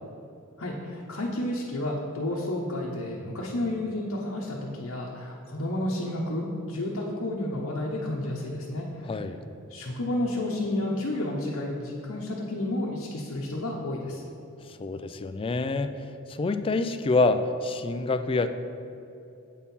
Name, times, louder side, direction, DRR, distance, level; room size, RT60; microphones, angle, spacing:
voice 1, 0.6-9.1 9.7-14.2, left 1 dB, 85° left, -4 dB, 0.9 m, -31 dB
voice 2, 9.0-9.4 14.8-15.9 16.3-18.5, left 3 dB, 25° left, 9 dB, 0.3 m, -26 dB
8.3 x 4.5 x 5.4 m, 2.7 s
head